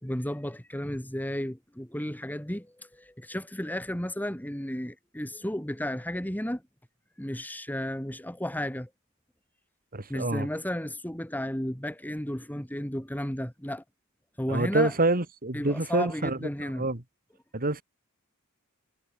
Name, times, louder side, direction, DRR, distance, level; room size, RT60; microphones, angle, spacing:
voice 1, 0.0-6.6 7.2-8.9 10.1-13.8 14.4-14.9 15.5-16.8, left 1 dB, 10° left, 2.9 m, -33 dB
voice 2, 9.9-10.5 14.5-17.0 17.5-17.8, right 2 dB, 40° right, 2.6 m, -27 dB
head